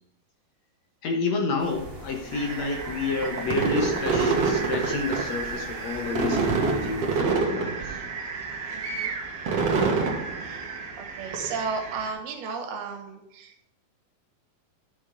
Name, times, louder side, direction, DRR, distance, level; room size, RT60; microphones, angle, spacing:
voice 1, 1.0-8.0, left 4 dB, 60° left, 2 dB, 1.9 m, -29 dB
sound 1, 1.6-7.2, right 1 dB, 15° right, 2.8 m, -44 dB
sound 2, 2.3-12.1, right 4 dB, 50° right, 2.3 m, -28 dB
voice 2, 8.7-9.2 10.4-10.7 11.0-13.7, right 5 dB, 90° right, 3 dB, 3.4 m, -34 dB
11.0 x 6.3 x 5.1 m, 0.81 s
omnidirectional pair, 4.3 m